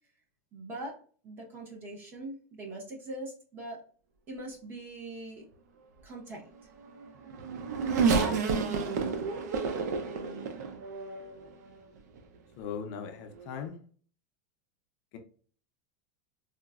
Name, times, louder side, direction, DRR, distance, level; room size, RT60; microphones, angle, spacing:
voice 1, 0.5-1.0 1.2-3.8 4.3-5.4 6.0-6.4, right 1 dB, 25° right, 0.8 m, -42 dB
Race car auto racing / Accelerating revving vroom, 6.9-11.5 12.2-12.3 13.4-13.6, right 5 dB, 85° right, 0.5 m, -30 dB
voice 2, 12.6-13.8, left 7 dB, 45° left, 0.5 m, -38 dB
3.9 x 2.0 x 2.3 m
supercardioid pair, 160°, 9 cm